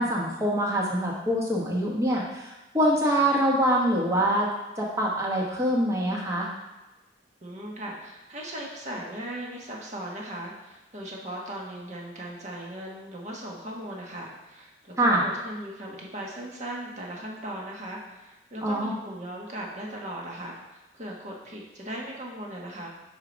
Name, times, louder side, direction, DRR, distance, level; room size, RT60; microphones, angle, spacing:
voice 1, 0.0-4.5 4.8-6.5 15.0-15.2 18.6-18.9, right 1 dB, 15° right, -2 dB, 1.1 m, -24 dB
voice 2, 7.4-22.9, right 1 dB, 40° right, -1 dB, 1.1 m, -38 dB
4.9 x 4.5 x 5.1 m, 1.0 s
head